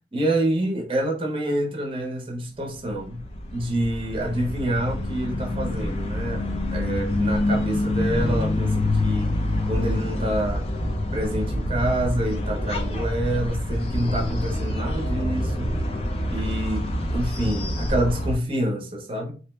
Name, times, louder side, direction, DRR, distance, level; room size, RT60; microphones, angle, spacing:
voice 1, 0.1-3.2 3.5-6.5 6.7-9.3 9.7-10.6 11.1-15.8 16.3-19.3, right 1 dB, 30° right, 0.6 m, -27 dB
sound 1, 2.9-18.4, left 1 dB, 35° left, 0.4 m, -26 dB
2.6 x 2.1 x 3.1 m
head